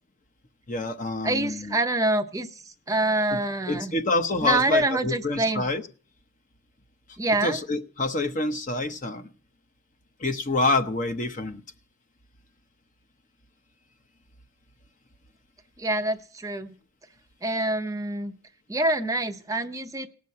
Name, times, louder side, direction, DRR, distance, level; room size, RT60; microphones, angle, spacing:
voice 1, 0.7-1.8 3.3-3.4 3.7-5.8 7.4-9.3 10.2-11.6, left 2 dB, 40° left, 8 dB, 0.8 m, -27 dB
voice 2, 1.2-2.5 2.9-4.0 4.4-5.6 7.2-7.6 15.8-16.7 17.4-18.3 18.7-20.1, right 2 dB, 15° right, 6 dB, 0.6 m, -25 dB
18.0 x 6.2 x 8.4 m, 0.43 s
head